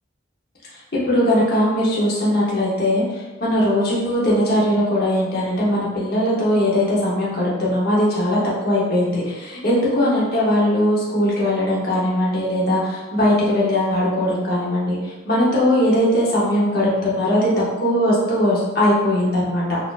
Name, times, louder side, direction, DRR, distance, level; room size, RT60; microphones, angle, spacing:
voice 1, 1.1-3.0 3.4-15.0 15.3-17.5 17.8-19.6, left 1 dB, 50° left, -6 dB, 0.9 m, -19 dB
4.0 x 2.8 x 2.4 m, 1.2 s
head